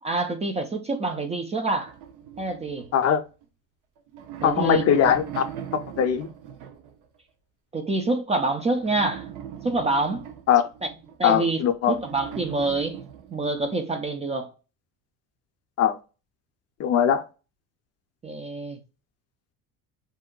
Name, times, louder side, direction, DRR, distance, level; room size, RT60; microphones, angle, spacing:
voice 1, 0.0-1.9 2.4-2.9 4.4-4.8 7.7-9.3 9.6-10.2 11.2-13.0 13.3-14.5 18.2-18.8, right 3 dB, 20° right, 0.3 m, -26 dB
sound 1, 1.9-3.4 4.0-7.1 8.6-11.2 11.8-13.8, right 9 dB, 60° right, 0.7 m, -39 dB
voice 2, 4.4-5.4 6.0-6.3 10.5-10.6 11.2-11.9 15.8-16.0 16.8-17.2, left 9 dB, 45° left, 0.5 m, -20 dB
2.6 x 2.1 x 3.7 m
cardioid pair, 110°, 36 cm